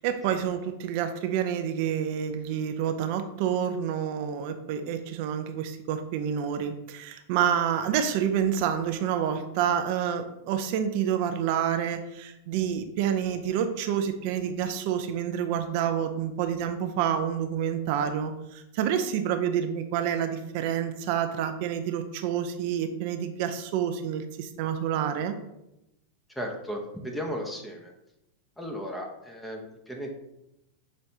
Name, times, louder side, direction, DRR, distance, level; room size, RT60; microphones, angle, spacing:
voice 1, 0.0-25.3, right 9 dB, 55° right, 8 dB, 0.5 m, -28 dB
voice 2, 26.3-27.9 28.6-30.1, equal, 5° left, 0 dB, 0.8 m, -35 dB
6.1 x 3.2 x 2.7 m, 0.88 s
hypercardioid pair, 105°, 0 cm